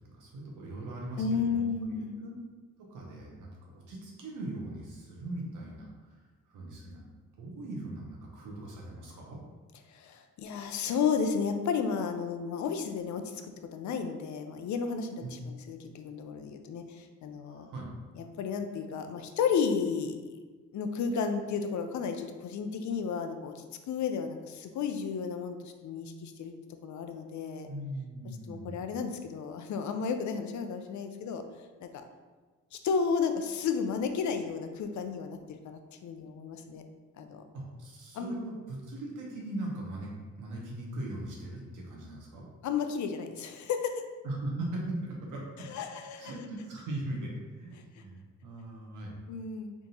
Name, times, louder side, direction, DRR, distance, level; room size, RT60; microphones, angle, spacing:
voice 1, 0.0-2.3 2.8-6.2 6.5-7.0 7.4-9.4 15.2-15.4 17.5-17.9 27.6-28.8 37.5-40.1 40.3-42.4 44.2-45.7 46.2-49.1, right 1 dB, 85° right, -2 dB, 1.1 m, -40 dB
voice 2, 1.2-2.1 9.9-13.4 13.7-17.7 18.1-20.4 20.7-26.5 26.8-27.7 28.5-31.4 31.8-31.9 32.7-36.8 37.2-37.4 38.1-38.4 42.6-43.9 45.6-46.3 49.3-49.7, left 6 dB, 70° left, 7 dB, 0.5 m, -33 dB
3.6 x 2.6 x 4.0 m, 1.3 s
cardioid pair, 95°, 30 cm